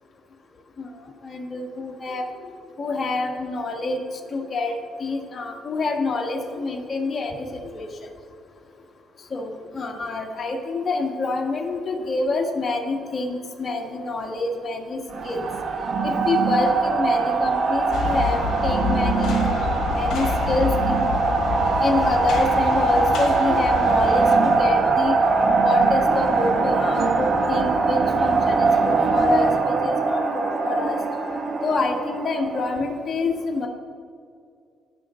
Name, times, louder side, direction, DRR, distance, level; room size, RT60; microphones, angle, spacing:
voice 1, 1.2-2.2 2.8-4.0 4.3-4.7 5.0-7.5 7.7-7.9 9.3-15.4 16.0-21.0 21.8-25.2 25.5-31.0 31.6-33.7, left 3 dB, 40° left, 2 dB, 1.7 m, -27 dB
sound 1, 15.1-32.8, right 4 dB, 60° right, 1.7 m, -22 dB
sound 2, 17.9-24.4, left 6 dB, 75° left, 1.5 m, -28 dB
18.0 x 6.1 x 3.8 m, 2.3 s
cardioid pair, 90°, 0 cm